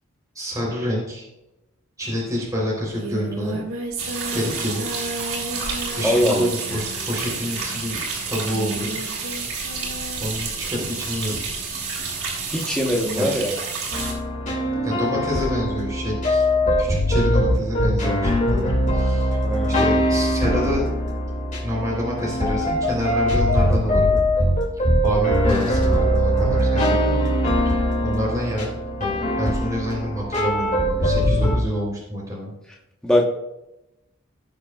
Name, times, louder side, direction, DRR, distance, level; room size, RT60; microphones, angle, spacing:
voice 1, 0.4-1.3 2.0-3.6 4.0-4.8 5.9-8.9 10.2-11.4 12.0-12.3 13.1-13.3 14.8-16.5 16.8-19.4 19.8-20.8 21.6-24.2 24.8-27.2 27.6-28.7 29.0-32.5, equal, 15° right, -4 dB, 3.5 m, -28 dB
Singing, 2.3-2.4 2.6-10.3, right 2 dB, 70° right, 2.0 m, -34 dB
sound 1, 4.0-14.1, right 4 dB, 90° right, 3.4 m, -30 dB
voice 2, 6.0-6.5 12.5-13.5 19.4-19.8 33.0-33.2, equal, 5° left, -2 dB, 1.1 m, -21 dB
sound 2, 13.9-31.6, equal, 35° left, 2.4 m, -21 dB
17.5 x 6.7 x 2.4 m, 0.92 s
head